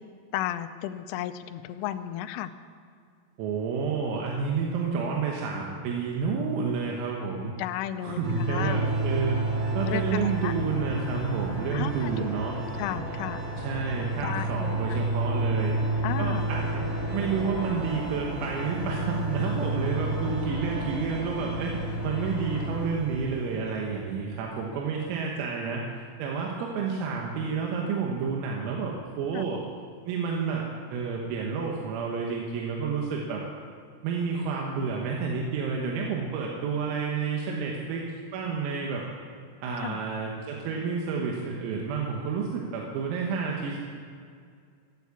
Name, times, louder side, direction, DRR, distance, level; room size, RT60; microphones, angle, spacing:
voice 1, 0.3-2.5 7.6-8.8 9.9-10.5 11.7-12.3 12.8-13.4 14.2-15.0 16.0-16.5 29.3-29.5 39.8-40.0, left 12 dB, 85° left, 10 dB, 3.0 m, -33 dB
voice 2, 3.4-7.5 8.0-12.6 13.6-15.8 16.2-25.8 26.2-29.6 30.1-33.4 34.0-38.0 38.3-39.0 39.6-43.8, right 5 dB, 85° right, -1 dB, 4.0 m, -30 dB
sound 1, 8.2-24.1, right 2 dB, 45° right, 3.4 m, -31 dB
sound 2, 8.5-22.9, left 2 dB, 65° left, 0.9 m, -38 dB
16.0 x 8.4 x 8.3 m, 2.2 s
omnidirectional pair, 5.9 m